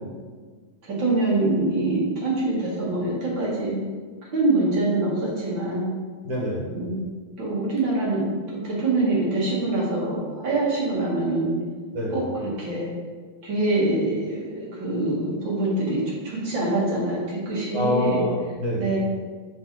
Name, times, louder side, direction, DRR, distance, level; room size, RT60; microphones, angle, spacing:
voice 1, 0.8-3.8 4.3-5.9 6.7-7.0 7.4-11.6 12.1-12.9 13.4-18.2 18.8-19.0, right 2 dB, 60° right, -6 dB, 2.4 m, -24 dB
voice 2, 6.2-6.7 11.9-12.2 17.7-18.9, left 1 dB, 80° right, -4 dB, 2.4 m, -26 dB
5.1 x 4.1 x 4.6 m, 1.5 s
omnidirectional pair, 2.4 m